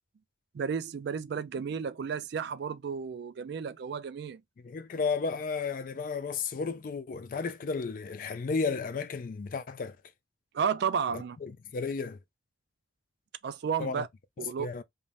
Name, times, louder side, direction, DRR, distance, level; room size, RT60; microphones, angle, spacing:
voice 1, 0.5-4.4 10.5-11.4 13.4-14.1 14.4-14.7, right 6 dB, 55° right, 0.3 m, -32 dB
voice 2, 4.6-10.0 11.1-12.2 13.8-14.0 14.4-14.8, left 4 dB, 45° left, 0.3 m, -33 dB
2.6 x 2.1 x 3.2 m
head